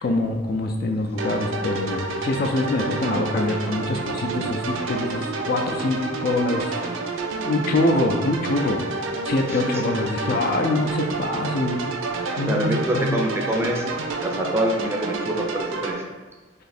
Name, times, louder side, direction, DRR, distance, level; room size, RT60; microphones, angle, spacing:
voice 1, 0.0-6.7 7.4-8.9 9.2-11.8 12.4-13.2, left 2 dB, 50° left, 3 dB, 0.4 m, -24 dB
sound 1, 1.2-15.9, right 3 dB, 80° right, 0.4 m, -29 dB
voice 2, 9.5-9.8 12.4-13.8 14.2-16.0, equal, 15° right, 0 dB, 0.4 m, -26 dB
3.1 x 2.8 x 4.1 m, 1.3 s
head